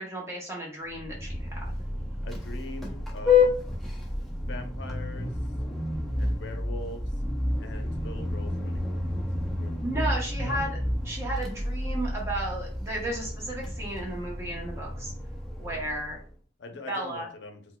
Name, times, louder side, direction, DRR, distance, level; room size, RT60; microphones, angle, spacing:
voice 1, 0.0-1.8 9.8-10.8 11.0-15.1 15.6-16.2 16.9-17.3, right 1 dB, 15° right, -3 dB, 0.9 m, -34 dB
Vehicle horn car horn honking, 0.9-16.3, left 3 dB, ahead, 0.5 m, -30 dB
voice 2, 2.2-3.5 4.4-5.4 6.2-7.1 7.6-9.2 9.6-10.1 10.4-10.7 15.6-15.9 16.6-17.6, left 2 dB, 70° left, 5 dB, 0.6 m, -42 dB
4.2 x 2.2 x 2.2 m, 0.43 s
head